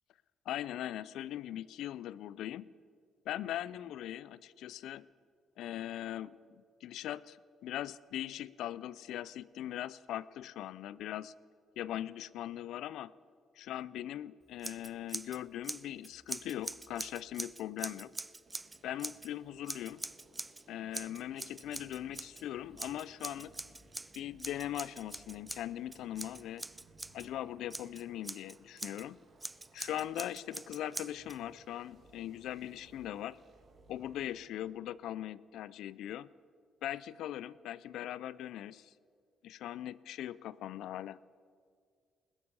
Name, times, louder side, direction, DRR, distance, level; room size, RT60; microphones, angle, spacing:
voice 1, 0.5-2.7 3.3-5.1 5.6-6.4 6.8-11.3 11.8-13.1 13.6-18.1 18.8-20.0 20.7-23.6 24.2-26.7 27.1-29.2 29.7-33.4 33.9-36.3 36.8-38.9 39.4-41.2, left 12 dB, 85° left, 20 dB, 0.3 m, -40 dB
Scissors, 14.6-15.4 15.6-19.3 19.7-20.6 20.9-22.4 22.8-27.3 27.7-29.0 29.4-31.4, right 2 dB, 15° right, 0.4 m, -43 dB
sound 1, 18.5-34.5, right 3 dB, 45° right, 1.9 m, -62 dB
20.0 x 6.9 x 6.8 m, 2.1 s
cardioid pair, 90°, 0 cm